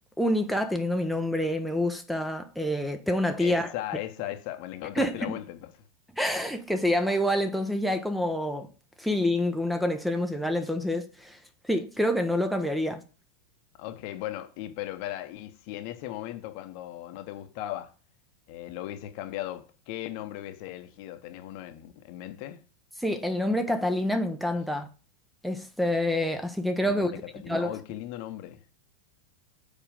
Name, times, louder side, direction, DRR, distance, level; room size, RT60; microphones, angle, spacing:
voice 1, 0.2-3.7 5.0-5.3 6.2-8.7 9.0-11.4 11.7-13.0 23.0-24.9 25.4-27.1 27.5-27.7, left 1 dB, ahead, 0.7 m, -27 dB
voice 2, 3.3-5.8 13.8-17.9 18.5-22.6 26.8-28.6, left 13 dB, 45° left, 0.9 m, -37 dB
7.0 x 4.9 x 5.1 m
figure-of-eight pair, 90°, 0 cm